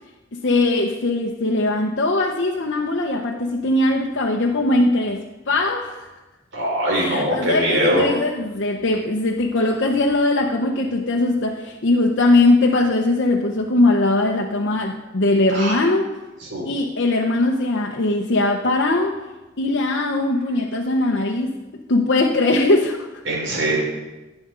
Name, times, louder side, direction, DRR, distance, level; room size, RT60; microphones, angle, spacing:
voice 1, 0.3-6.1 6.9-16.1 16.6-19.2 19.6-23.1, left 2 dB, 60° left, 0 dB, 0.8 m, -20 dB
voice 2, 6.5-8.0 15.5-15.7 16.4-16.7 23.2-23.8, right 1 dB, 65° right, -4 dB, 5.0 m, -22 dB
16.5 x 9.2 x 3.9 m, 1.1 s
head